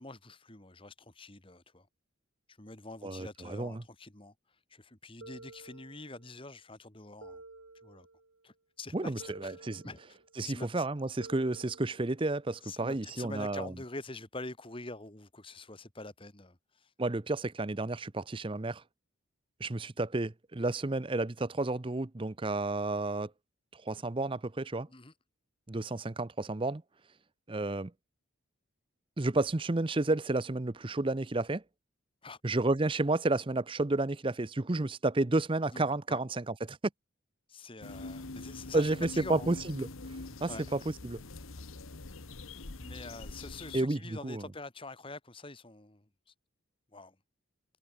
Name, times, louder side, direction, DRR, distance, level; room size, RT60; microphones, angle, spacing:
voice 1, 0.0-1.9 2.5-4.3 4.7-7.4 7.8-8.1 8.4-9.1 9.4-9.6 9.8-10.2 10.4-10.9 12.6-16.9 24.9-25.1 32.2-32.4 35.7-36.2 37.5-39.5 40.5-40.7 42.8-46.1 46.9-47.2, left 2 dB, 25° left, 1.8 m, -45 dB
voice 2, 3.0-3.8 8.9-9.8 10.4-13.7 17.0-18.8 19.6-23.3 23.7-24.9 25.7-26.8 27.5-27.9 29.2-31.6 32.4-36.8 38.7-39.9 40.4-41.2 43.7-44.4, right 2 dB, 25° right, 0.6 m, -31 dB
sound 1, 5.2-6.4 7.2-8.4 9.2-10.4 11.2-12.4, right 2 dB, 70° right, 1.9 m, -52 dB
sound 2, 37.8-43.8, left 3 dB, 75° left, 1.4 m, -44 dB
head